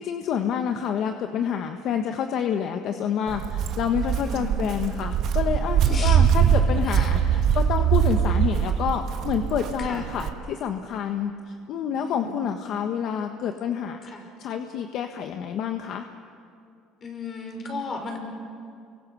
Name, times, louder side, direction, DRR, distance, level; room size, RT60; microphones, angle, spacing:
voice 1, 0.0-14.0 14.4-16.1, left 8 dB, 60° left, 5 dB, 1.3 m, -28 dB
Walk footsteps, 3.3-10.3, right 8 dB, 60° right, 1.5 m, -22 dB
voice 2, 3.9-4.5 5.8-6.3 9.9-10.0 12.0-12.3 14.1-14.2 17.0-18.2, left 3 dB, 35° left, 3 dB, 5.4 m, -35 dB
29.0 x 23.5 x 6.4 m, 2.4 s
cardioid pair, 110°, 0 cm